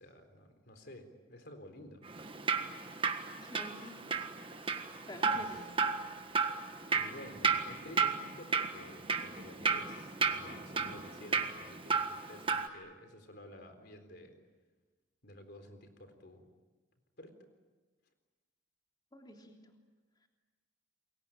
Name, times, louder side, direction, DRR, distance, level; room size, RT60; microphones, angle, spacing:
voice 1, 0.0-2.0 5.3-5.7 6.9-14.3 15.2-16.5 17.2-17.3, left 1 dB, 55° left, 7 dB, 4.0 m, -52 dB
Drip, 2.1-12.7, right 5 dB, 25° right, 1.5 m, -34 dB
voice 2, 3.4-4.0 5.1-5.9 19.1-19.6, equal, 20° left, 2 dB, 3.2 m, -48 dB
29.0 x 22.5 x 9.0 m, 1.3 s
head